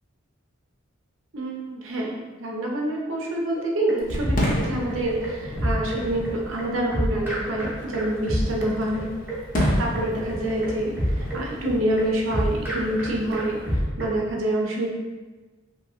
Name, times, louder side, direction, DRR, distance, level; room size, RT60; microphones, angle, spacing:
voice 1, 1.3-9.1 9.8-13.6 14.0-14.9, right 1 dB, 75° right, -1 dB, 0.6 m, -27 dB
sound 1, 3.6-14.2, equal, 10° right, 0.6 m, -28 dB
Fireworks, 4.0-13.9, equal, 45° left, 0.6 m, -33 dB
2.8 x 2.7 x 2.4 m, 1.3 s
head